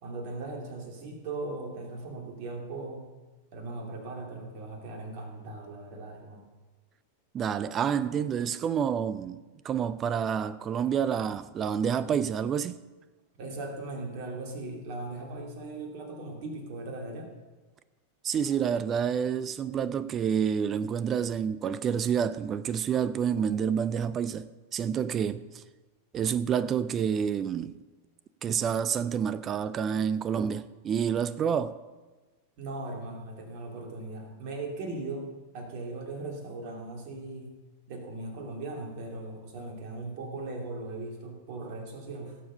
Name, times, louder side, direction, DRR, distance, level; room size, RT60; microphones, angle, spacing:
voice 1, 0.0-3.1 3.5-6.5 13.4-17.3 25.2-25.4 32.6-37.5 37.9-42.4, right 2 dB, 45° right, 2.6 m, -38 dB
voice 2, 7.3-9.4 9.6-12.8 18.2-25.6 26.1-27.8 28.4-31.8, right 8 dB, 25° right, 0.4 m, -28 dB
17.5 x 7.1 x 5.5 m
figure-of-eight pair, 90°, 0 cm